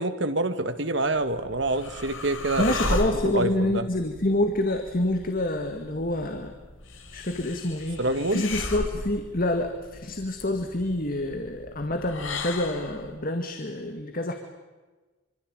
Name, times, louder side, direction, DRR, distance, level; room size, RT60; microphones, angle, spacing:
voice 1, 0.0-3.0 3.2-3.9 8.0-8.5, right 2 dB, 60° right, 10 dB, 2.0 m, -27 dB
sound 1, 1.1-13.1, left 2 dB, 75° left, 3.2 m, -36 dB
voice 2, 2.6-6.6 7.1-8.0 8.3-14.4, left 1 dB, 45° left, 6 dB, 2.1 m, -27 dB
26.0 x 25.0 x 9.0 m, 1.3 s
head